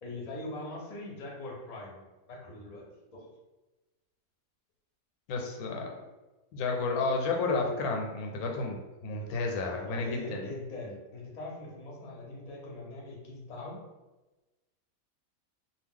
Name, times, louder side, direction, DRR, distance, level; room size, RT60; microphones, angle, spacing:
voice 1, 0.0-2.8 3.1-3.3 9.9-13.8, left 2 dB, 40° left, -3 dB, 0.6 m, -42 dB
voice 2, 5.3-5.9 6.5-10.5, left 3 dB, 85° left, 1 dB, 1.1 m, -31 dB
2.3 x 2.2 x 3.6 m, 1.1 s
omnidirectional pair, 1.5 m